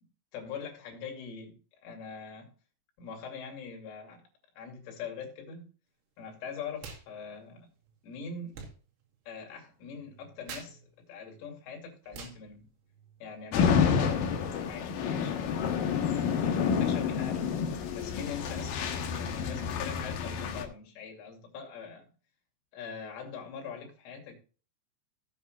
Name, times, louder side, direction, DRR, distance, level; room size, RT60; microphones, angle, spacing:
voice 1, 0.3-1.6 1.8-2.5 3.0-4.2 4.6-5.7 6.2-7.7 8.0-8.6 9.3-12.7 13.2-16.0 16.4-22.1 22.7-24.3, left 6 dB, 85° left, 5.2 m, -43 dB
sound 1, 6.8-7.1 7.3-13.5, right 5 dB, 85° right, 5.0 m, -50 dB
sound 2, 13.5-20.6, left 7 dB, 65° left, 2.3 m, -29 dB
16.5 x 8.4 x 2.4 m
omnidirectional pair, 5.6 m